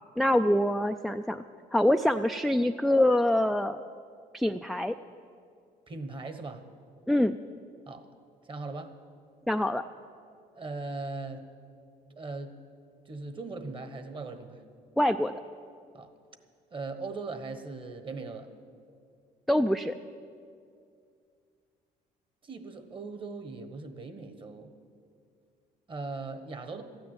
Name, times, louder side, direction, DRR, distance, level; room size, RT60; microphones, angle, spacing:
voice 1, 0.2-1.4 1.7-3.8 4.3-5.0 7.1-7.3 9.5-9.8 15.0-15.3 19.5-19.9, left 1 dB, ahead, 7 dB, 0.3 m, -25 dB
voice 2, 5.9-6.6 7.9-8.1 8.4-8.9 10.5-11.4 12.2-12.5 13.1-14.6 15.9-16.1 16.7-18.5 22.4-24.7 25.9-26.8, right 3 dB, 30° right, 9 dB, 1.3 m, -39 dB
13.5 x 9.4 x 8.8 m, 2.3 s
cardioid pair, 110°, 17 cm